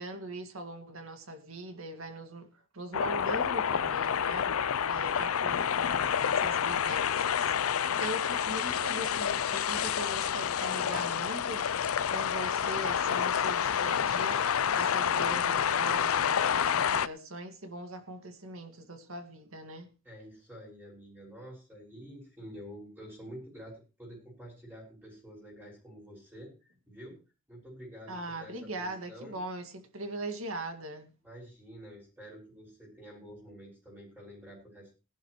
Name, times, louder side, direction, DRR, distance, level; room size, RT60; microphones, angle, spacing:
voice 1, 0.0-2.5 2.7-4.5 4.9-7.5 7.9-11.7 12.0-14.5 14.7-19.9 28.1-31.1, right 1 dB, 80° right, 2.1 m, -40 dB
sound 1, 2.9-17.1, left 8 dB, 85° left, 0.5 m, -28 dB
voice 2, 20.0-27.2 27.5-29.4 31.2-35.0, equal, 10° right, 6.1 m, -48 dB
18.5 x 11.5 x 3.2 m
head